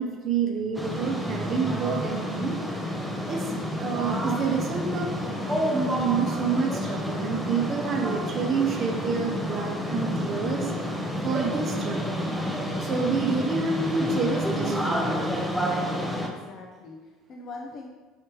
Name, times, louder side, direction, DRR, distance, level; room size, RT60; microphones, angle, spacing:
voice 1, 0.0-2.9 3.3-5.1 5.7-10.7 11.2-12.3 12.8-15.3, right 5 dB, 45° right, 2 dB, 0.7 m, -28 dB
sound 1, 0.7-16.3, equal, ahead, 0.6 m, -29 dB
voice 2, 16.1-17.9, left 3 dB, 50° left, 0 dB, 0.5 m, -42 dB
4.8 x 3.1 x 3.0 m, 1.3 s
supercardioid pair, 105°, 0 cm